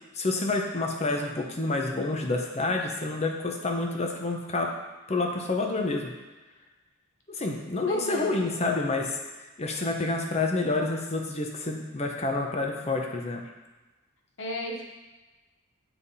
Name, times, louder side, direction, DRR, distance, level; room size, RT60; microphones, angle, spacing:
voice 1, 0.1-4.7 5.1-6.1 7.3-9.2 9.6-13.4, left 2 dB, 30° left, 2 dB, 0.8 m, -28 dB
voice 2, 7.9-8.4 14.4-14.8, equal, 60° left, 0 dB, 1.1 m, -34 dB
9.5 x 3.6 x 4.2 m, 1.2 s
head